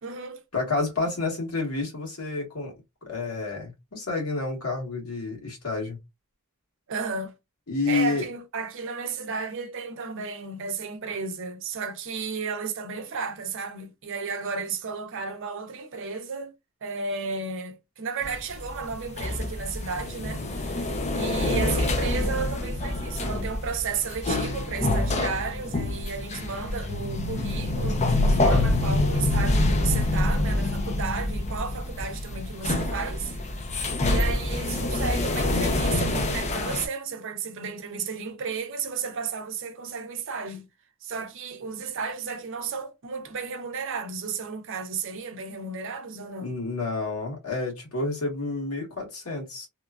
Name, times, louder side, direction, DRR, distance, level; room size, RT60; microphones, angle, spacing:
voice 1, 0.0-0.4 6.9-7.3 7.9-16.5 16.8-33.6 34.0-40.7 41.0-46.5, right 5 dB, 60° right, 0.6 m, -33 dB
voice 2, 0.5-2.7 3.0-6.0 7.7-8.3 46.4-49.7, left 3 dB, 75° left, 1.5 m, -29 dB
sound 1, 18.2-36.9, left 2 dB, 30° left, 0.5 m, -26 dB
2.9 x 2.3 x 2.3 m
head